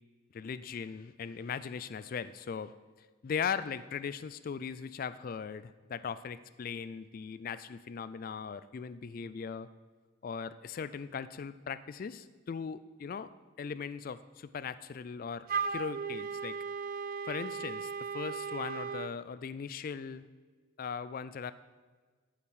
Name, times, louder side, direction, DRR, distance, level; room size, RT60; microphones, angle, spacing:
voice 1, 0.3-2.7 3.2-9.7 10.2-13.3 13.6-16.6 17.3-20.3 20.8-21.5, left 6 dB, 45° left, 15 dB, 0.3 m, -39 dB
Wind instrument woodwind instrument, 15.5-19.1, right 5 dB, 45° right, 0.5 m, -36 dB
13.0 x 5.8 x 6.3 m, 1.4 s
head